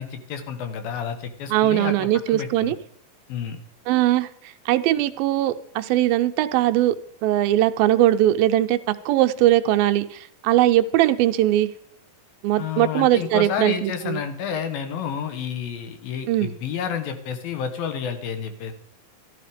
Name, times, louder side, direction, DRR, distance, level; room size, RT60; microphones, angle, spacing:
voice 1, 0.0-2.7 3.3-3.6 12.6-18.7, left 7 dB, 75° left, 8 dB, 3.1 m, -30 dB
voice 2, 1.5-2.8 3.9-4.3 4.7-7.0 7.2-11.7 12.4-14.2 16.3-16.5, right 13 dB, 80° right, 8 dB, 2.4 m, -20 dB
13.0 x 12.5 x 5.1 m, 0.64 s
omnidirectional pair, 4.3 m